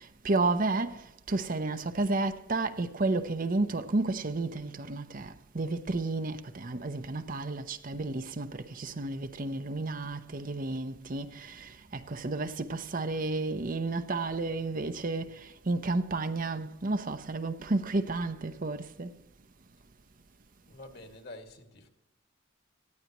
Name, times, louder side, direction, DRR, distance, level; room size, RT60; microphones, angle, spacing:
voice 1, 0.2-0.9 1.3-11.7 12.1-19.1, right 2 dB, 45° right, 0.7 m, -31 dB
voice 2, 11.1-11.5 20.7-21.9, left 2 dB, 55° left, 2.2 m, -48 dB
19.0 x 14.5 x 3.0 m
head